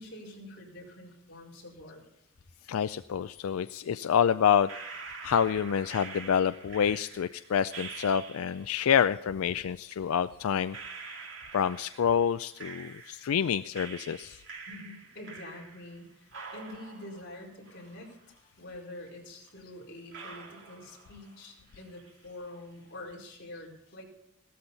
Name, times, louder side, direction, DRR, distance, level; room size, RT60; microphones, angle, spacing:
voice 1, 0.0-2.0 14.6-18.1 18.6-24.0, left 1 dB, 55° left, -3 dB, 4.7 m, -46 dB
voice 2, 2.7-4.7 5.2-10.8 11.5-14.4, left 8 dB, 85° left, 13 dB, 0.4 m, -27 dB
sound 1, 4.7-8.8 9.9-10.0 10.7-13.4 13.7-16.0 16.3-18.4 18.7-18.8 19.5-19.6 20.1-21.4 21.7-22.3, right 4 dB, 60° right, 2.6 m, -46 dB
16.0 x 13.5 x 4.1 m, 0.80 s
head